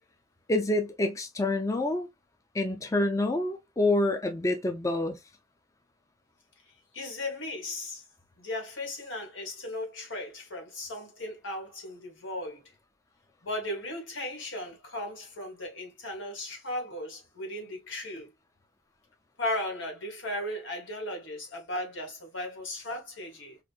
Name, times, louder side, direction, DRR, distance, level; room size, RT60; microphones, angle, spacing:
voice 1, 0.5-2.1 2.5-5.2, left 2 dB, 15° left, 0.4 m, -27 dB
voice 2, 6.9-8.0 8.4-12.7 13.4-18.3 19.4-23.6, left 1 dB, 90° left, 2.0 m, -36 dB
5.0 x 2.6 x 2.3 m
head